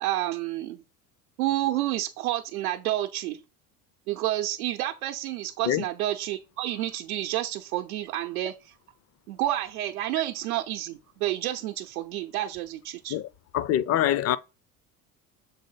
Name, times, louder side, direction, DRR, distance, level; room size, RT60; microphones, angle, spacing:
voice 1, 0.0-0.8 1.4-3.4 4.1-8.7 9.3-13.2, right 14 dB, 80° right, 0.6 m, -29 dB
voice 2, 13.5-14.4, left 11 dB, 35° left, 0.5 m, -24 dB
7.0 x 3.7 x 3.9 m
hypercardioid pair, 80°, 43 cm